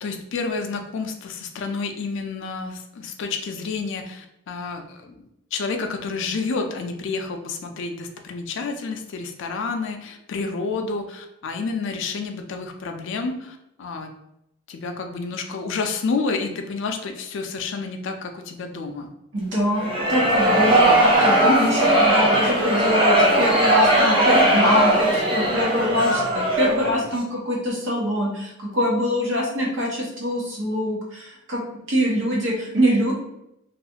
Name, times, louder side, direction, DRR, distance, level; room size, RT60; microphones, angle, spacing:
voice 1, 0.0-14.1 14.7-19.1, left 4 dB, 65° left, 5 dB, 0.4 m, -29 dB
voice 2, 19.3-31.6 31.9-33.1, equal, 65° right, -3 dB, 0.9 m, -24 dB
sound 1, 19.8-27.0, right 1 dB, 25° right, 0.5 m, -19 dB
2.4 x 2.3 x 2.8 m, 0.81 s
head